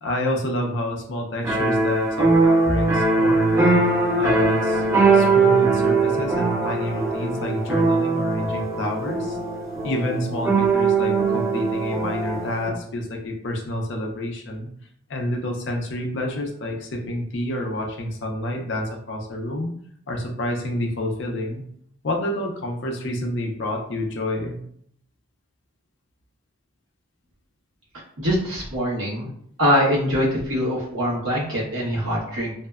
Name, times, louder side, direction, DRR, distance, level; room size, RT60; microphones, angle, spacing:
voice 1, 0.0-3.7 4.2-4.8 5.1-9.4 9.8-14.7 15.1-19.7 20.1-21.6 22.0-24.6, left 1 dB, 60° left, 1 dB, 0.5 m, -28 dB
sound 1, 1.4-12.7, right 3 dB, 15° right, 0.4 m, -21 dB
voice 2, 28.2-29.3 29.6-32.5, equal, 80° right, -6 dB, 1.0 m, -23 dB
2.6 x 2.1 x 2.3 m, 0.67 s
head